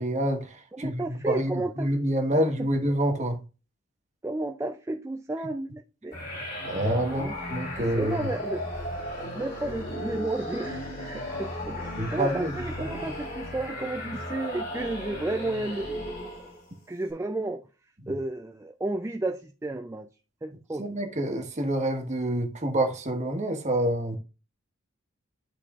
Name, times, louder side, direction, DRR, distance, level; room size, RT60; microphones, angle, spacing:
voice 1, 0.0-3.4 6.6-8.3 12.0-12.5 12.8-13.0 20.8-24.2, right 1 dB, 35° right, 1.2 m, -27 dB
voice 2, 0.7-1.9 2.3-2.7 4.2-6.2 6.7-8.7 9.2-16.0 16.4-16.5 16.9-20.1 20.4-21.0, right 2 dB, 15° right, 0.3 m, -33 dB
sound 1, 6.1-16.7, left 1 dB, 45° left, 2.2 m, -35 dB
12.5 x 4.2 x 2.4 m
head